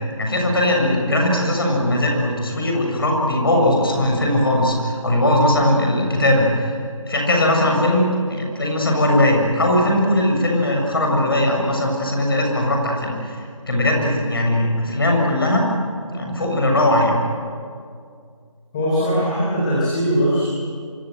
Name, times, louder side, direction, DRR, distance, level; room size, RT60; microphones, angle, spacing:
voice 1, 0.2-6.8 7.1-8.0 8.3-13.4 13.7-15.6 16.1-17.1, left 1 dB, 45° left, 1 dB, 6.9 m, -19 dB
voice 2, 18.7-20.5, equal, 10° left, -7 dB, 3.6 m, -20 dB
26.5 x 24.5 x 8.0 m, 2.2 s
figure-of-eight pair, 175°, 17 cm